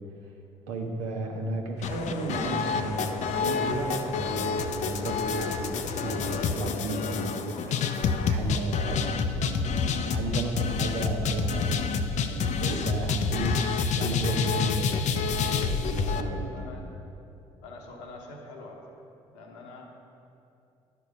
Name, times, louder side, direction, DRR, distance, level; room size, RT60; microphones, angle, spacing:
voice 1, 0.7-7.8 8.2-9.6 10.0-16.7, right 2 dB, 75° right, 1 dB, 1.0 m, -33 dB
sound 1, 1.8-16.2, left 5 dB, 55° left, 0.5 m, -28 dB
voice 2, 15.8-16.9 17.6-19.8, left 3 dB, 80° left, 0 dB, 1.1 m, -45 dB
11.0 x 4.6 x 5.2 m, 2.7 s
hypercardioid pair, 50°, 15 cm